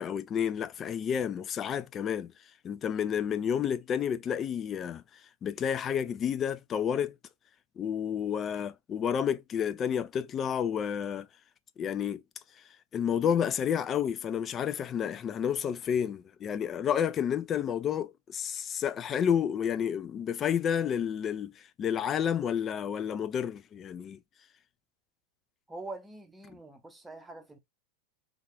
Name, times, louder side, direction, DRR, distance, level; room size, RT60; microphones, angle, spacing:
voice 1, 0.0-2.3 2.6-7.2 7.8-11.3 11.8-12.2 12.9-24.2, left 8 dB, 25° left, 0.3 m, -30 dB
voice 2, 25.7-27.6, right 2 dB, 10° right, 0.7 m, -44 dB
3.4 x 2.4 x 3.1 m
figure-of-eight pair, 90°, 0 cm